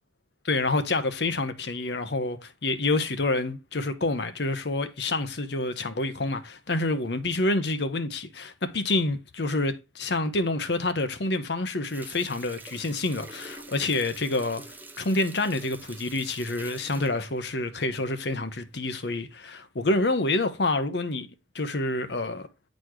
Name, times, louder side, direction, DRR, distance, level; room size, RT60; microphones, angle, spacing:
voice 1, 0.4-21.3 21.5-22.5, left 2 dB, 65° left, 0.9 m, -28 dB
Water tap faucet, 11.9-18.3 18.7-18.8, right 3 dB, 10° right, 0.6 m, -46 dB
9.7 x 4.2 x 3.1 m
head